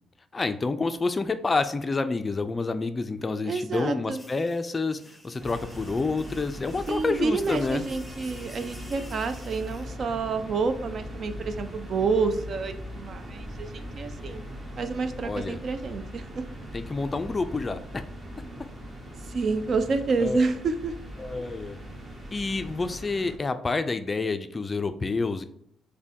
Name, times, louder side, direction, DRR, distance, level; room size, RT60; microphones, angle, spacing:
voice 1, 0.3-7.8 15.2-15.6 16.7-18.0 20.2-20.4 21.2-21.8 22.3-25.4, left 3 dB, 25° left, 9 dB, 0.3 m, -28 dB
voice 2, 3.5-4.2 6.9-14.4 14.8-16.4 19.2-21.0, right 4 dB, 50° right, 9 dB, 0.4 m, -29 dB
sound 1, 4.1-9.9, left 1 dB, 5° left, 0.8 m, -50 dB
sound 2, 5.4-23.4, equal, 30° right, 1.1 m, -40 dB
5.2 x 2.1 x 2.8 m, 0.73 s
cardioid pair, 90°, 0 cm